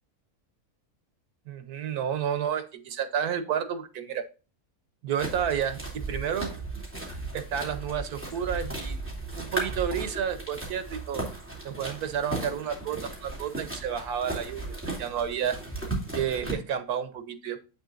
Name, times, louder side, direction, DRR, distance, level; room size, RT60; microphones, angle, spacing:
voice 1, 1.5-4.2 5.0-6.6 7.3-9.0 9.4-11.2 11.6-15.6 16.1-17.6, right 8 dB, 90° right, 11 dB, 1.4 m, -31 dB
sound 1, 5.2-16.5, right 2 dB, 10° right, 2.5 m, -36 dB
7.9 x 6.6 x 2.5 m, 0.34 s
omnidirectional pair, 1.6 m